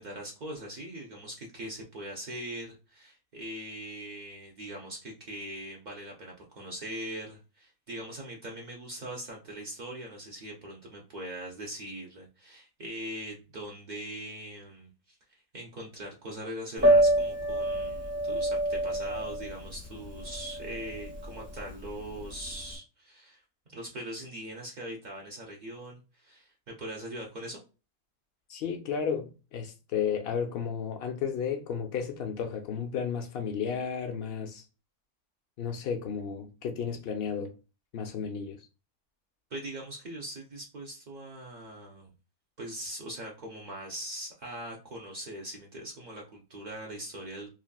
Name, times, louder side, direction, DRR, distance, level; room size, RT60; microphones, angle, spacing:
voice 1, 0.0-15.2 15.5-23.4 23.7-27.6 39.5-42.1 42.6-47.5, right 1 dB, 85° right, 0.4 m, -41 dB
Piano, 16.8-22.7, right 1 dB, 20° right, 0.4 m, -27 dB
voice 2, 28.5-34.6 35.6-37.5 37.9-38.6, left 7 dB, 80° left, 0.5 m, -33 dB
3.2 x 2.4 x 2.3 m
omnidirectional pair, 1.6 m